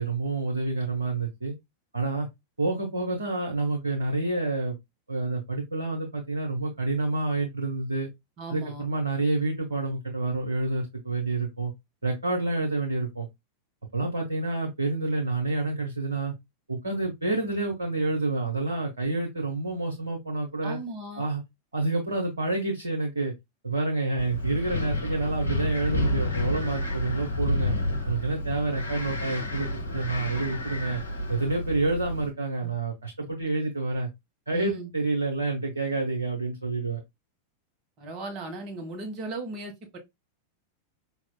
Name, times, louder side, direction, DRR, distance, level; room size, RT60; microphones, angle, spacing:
voice 1, 0.0-1.5 1.9-2.3 2.6-4.8 5.1-8.1 8.5-11.7 12.0-13.3 13.9-16.3 16.7-20.8 21.1-21.4 21.7-23.3 23.6-27.7 28.1-31.0 31.3-34.1 34.5-37.0, right 2 dB, 75° right, 0.9 m, -28 dB
voice 2, 8.4-8.8 20.6-21.3 32.6-32.7 33.6-33.7 34.5-34.9 38.0-40.0, right 2 dB, 35° right, 1.4 m, -37 dB
Wind, 24.2-32.3, left 1 dB, 75° left, 0.7 m, -30 dB
5.0 x 2.9 x 2.2 m
figure-of-eight pair, 90°, 0 cm